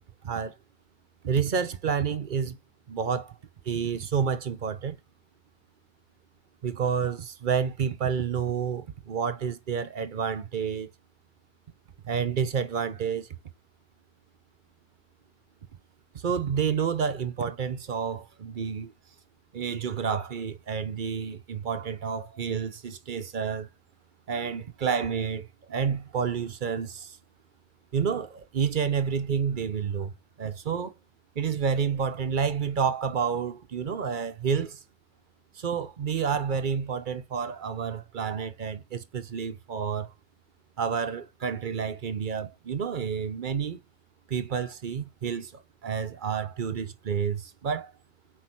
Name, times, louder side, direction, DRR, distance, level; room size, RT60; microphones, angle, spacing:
voice 1, 0.2-0.6 1.2-2.6 2.9-3.3 3.7-5.0 6.6-10.9 12.1-13.3 16.1-18.9 19.5-23.7 24.3-27.2 27.9-30.9 31.4-34.8 35.5-40.1 40.8-43.8 44.3-45.5 45.8-47.9, right 6 dB, 55° right, 0.9 m, -29 dB
6.1 x 4.4 x 4.3 m
omnidirectional pair, 1.1 m